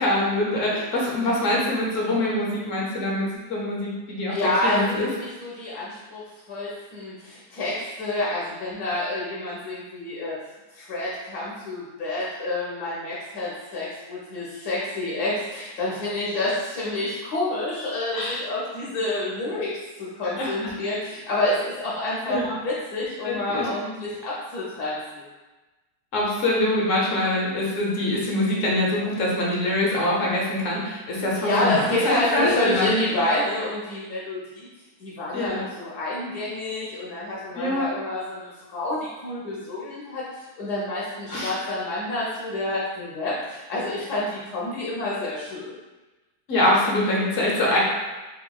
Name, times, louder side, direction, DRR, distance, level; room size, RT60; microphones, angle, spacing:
voice 1, 0.0-4.4 4.6-5.1 18.1-18.4 20.4-20.5 22.3-22.6 23.2-23.7 26.1-32.9 35.3-35.7 37.5-37.9 41.3-41.5 46.5-47.8, left 1 dB, 60° left, -4 dB, 1.0 m, -24 dB
voice 2, 4.3-6.2 6.5-10.3 10.7-19.7 20.0-25.2 31.4-34.7 35.0-45.7, left 1 dB, 80° left, -6 dB, 1.3 m, -28 dB
3.6 x 2.9 x 2.2 m, 1.2 s
omnidirectional pair, 1.7 m